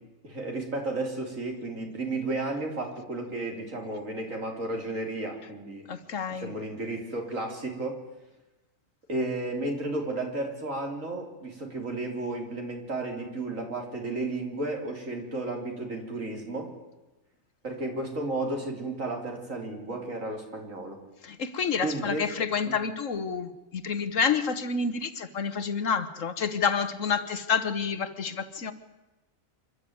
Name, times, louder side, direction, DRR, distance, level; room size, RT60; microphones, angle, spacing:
voice 1, 0.2-5.9 6.4-8.0 9.1-16.7 17.6-21.0 21.8-22.2 22.7-22.8, right 2 dB, 75° right, 2 dB, 3.8 m, -33 dB
voice 2, 5.9-6.5 21.2-28.7, left 6 dB, 70° left, 11 dB, 1.7 m, -29 dB
26.5 x 12.5 x 9.5 m, 1.1 s
omnidirectional pair, 1.4 m